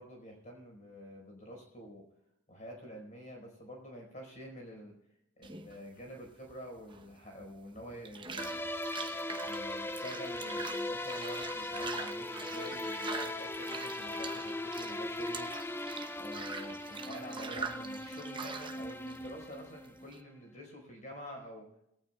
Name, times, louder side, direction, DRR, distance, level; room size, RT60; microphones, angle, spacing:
voice 1, 0.0-2.0 2.5-4.9 5.4-8.6 9.4-15.5 16.2-21.7, equal, 35° left, 1 dB, 4.7 m, -48 dB
sound 1, 5.4-20.2, right 5 dB, 25° right, 0.8 m, -44 dB
sound 2, 8.4-20.2, left 1 dB, 10° left, 0.5 m, -39 dB
22.5 x 18.0 x 2.3 m, 0.80 s
head